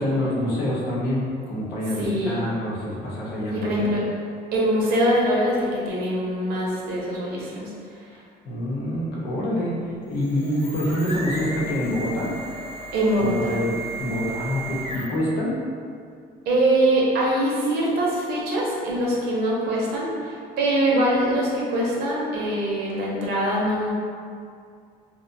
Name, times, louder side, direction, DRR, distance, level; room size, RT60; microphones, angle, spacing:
voice 1, 0.0-3.7 8.1-12.3 13.2-15.5, left 1 dB, 80° left, -6 dB, 0.8 m, -26 dB
voice 2, 2.0-2.4 3.5-4.0 4.5-7.7 12.9-13.5 16.4-23.9, right 1 dB, 70° right, -4 dB, 0.7 m, -23 dB
sound 1, 10.0-15.3, right 1 dB, 40° left, 0.5 m, -35 dB
2.6 x 2.1 x 2.6 m, 2.2 s
cardioid pair, 110°, 17 cm